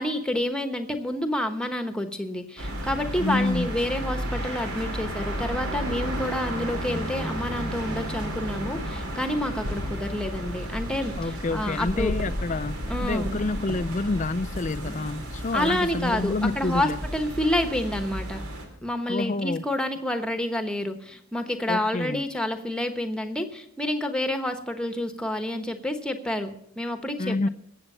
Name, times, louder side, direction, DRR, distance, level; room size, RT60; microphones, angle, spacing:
voice 1, 0.0-12.1 12.9-13.4 15.5-18.4 18.8-26.5 26.8-27.5, left 1 dB, 5° left, 1.1 m, -29 dB
sound 1, 2.6-18.7, equal, 80° right, 3.3 m, -33 dB
voice 2, 3.2-3.7 11.2-17.0 19.1-19.6 21.7-22.2 27.2-27.5, left 2 dB, 35° left, 0.5 m, -28 dB
21.0 x 8.2 x 5.6 m
head